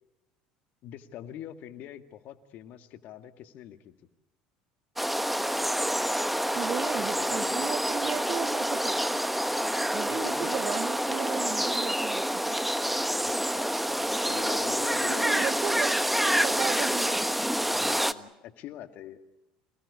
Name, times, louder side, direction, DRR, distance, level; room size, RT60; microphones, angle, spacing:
voice 1, 0.8-3.9 6.8-7.7 8.1-8.3 10.1-10.6 13.2-15.5 17.6-19.2, left 11 dB, 60° left, 2.2 m, -44 dB
sound 1, 5.0-18.1, equal, 5° right, 1.3 m, -27 dB
voice 2, 6.5-9.0 9.9-12.6 15.2-15.9 16.2-17.2, right 10 dB, 50° right, 0.9 m, -35 dB
28.0 x 19.0 x 8.6 m
hypercardioid pair, 70°, 3 cm